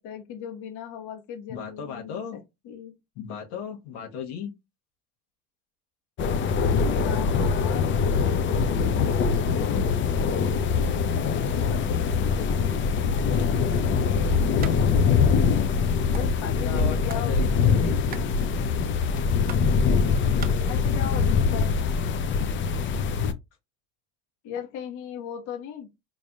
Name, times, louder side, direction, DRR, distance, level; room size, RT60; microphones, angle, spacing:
voice 1, 0.0-2.2 2.6-2.9 7.0-9.9 11.2-14.4 16.1-17.4 17.7-17.9 20.7-21.8 24.4-25.9, left 8 dB, 65° left, 1.2 m, -38 dB
voice 2, 1.5-2.4 3.1-4.5 16.5-18.0, left 7 dB, 85° left, 1.2 m, -36 dB
sound 1, 6.2-23.3, left 5 dB, 40° left, 0.6 m, -23 dB
sound 2, 14.6-14.8 15.1-15.2 15.4-16.3 16.8-17.3 17.6-20.5, right 9 dB, 30° right, 0.5 m, -41 dB
4.0 x 3.4 x 2.3 m
supercardioid pair, 110°, 31 cm